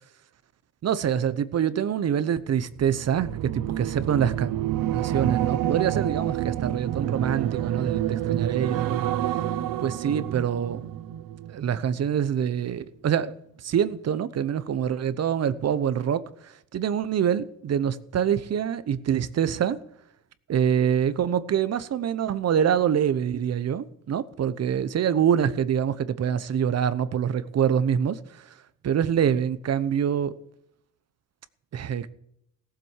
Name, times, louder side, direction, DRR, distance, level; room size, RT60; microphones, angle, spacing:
voice 1, 0.8-4.5 4.9-9.2 9.8-10.8 11.5-13.3 13.6-19.8 20.5-28.4 28.8-30.3 31.7-32.1, right 8 dB, 50° right, 0.9 m, -25 dB
sound 1, 2.7-12.1 12.4-12.8, right 12 dB, 85° right, 0.8 m, -28 dB
17.5 x 7.7 x 6.4 m
cardioid pair, 135°, 32 cm